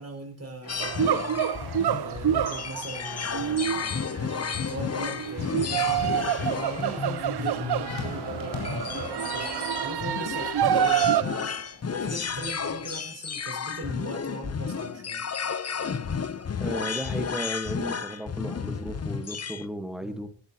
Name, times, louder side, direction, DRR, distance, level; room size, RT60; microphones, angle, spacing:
voice 1, 0.0-1.5 2.0-15.3 20.0-20.3, right 2 dB, 30° right, 5.3 m, -39 dB
sound 1, 0.6-13.0, left 3 dB, 75° left, 4.9 m, -42 dB
sound 2, 0.7-19.7, left 6 dB, 35° left, 0.7 m, -33 dB
sound 3, 0.8-11.2, right 10 dB, 55° right, 0.6 m, -27 dB
voice 2, 16.6-20.3, equal, ahead, 1.4 m, -34 dB
23.0 x 11.5 x 2.9 m
wide cardioid pair, 130°, 47 cm